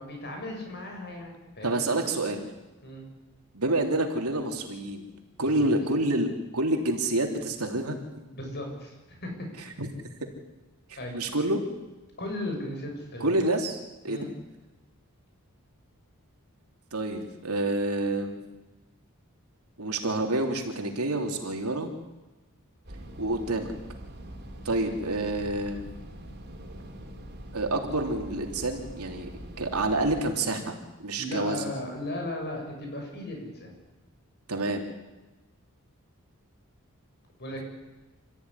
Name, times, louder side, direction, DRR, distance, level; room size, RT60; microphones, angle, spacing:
voice 1, 0.0-2.0 2.8-3.0 5.4-5.7 8.3-9.5 11.0-11.2 12.2-13.4 14.1-14.3 24.7-24.8 31.2-33.7 37.4-37.6, left 1 dB, 50° left, 2 dB, 7.4 m, -36 dB
voice 2, 1.6-2.5 3.5-5.0 5.4-6.3 6.5-8.0 9.8-9.9 11.1-11.6 13.2-14.2 16.9-18.4 19.8-21.9 23.2-23.7 24.7-25.9 27.5-29.3 29.6-31.6 34.5-34.9, right 2 dB, 80° right, 3 dB, 3.4 m, -28 dB
sound 1, 22.8-30.2, right 1 dB, 50° right, 3.7 m, -43 dB
28.0 x 14.5 x 9.9 m, 1.1 s
head